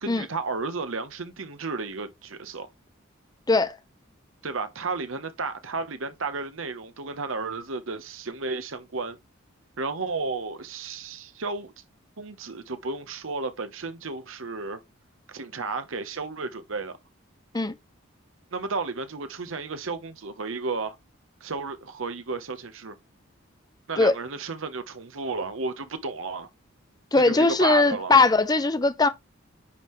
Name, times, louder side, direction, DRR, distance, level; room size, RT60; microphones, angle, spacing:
voice 1, 0.0-2.7 4.4-9.2 9.8-11.7 12.2-14.8 15.3-17.0 18.5-21.0 21.4-23.0 23.9-26.5 27.2-28.1, right 4 dB, 75° right, 1.0 m, -33 dB
voice 2, 27.1-29.1, left 3 dB, 20° left, 0.6 m, -20 dB
9.8 x 3.8 x 3.1 m
head